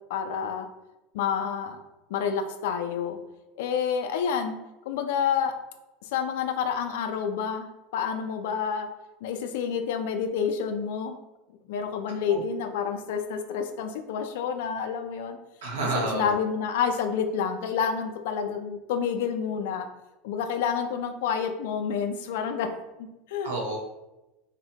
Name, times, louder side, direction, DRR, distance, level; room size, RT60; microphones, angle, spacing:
voice 1, 0.1-0.7 1.1-1.8 2.1-3.2 3.6-4.6 4.9-5.5 6.0-8.9 9.2-11.2 11.7-15.4 15.9-19.9 20.2-22.7 23.0-23.5, left 7 dB, 75° left, 7 dB, 0.3 m, -29 dB
voice 2, 15.6-16.3 23.4-23.8, right 3 dB, 80° right, -1 dB, 0.8 m, -29 dB
2.7 x 2.1 x 2.8 m, 0.98 s
hypercardioid pair, 100°, 0 cm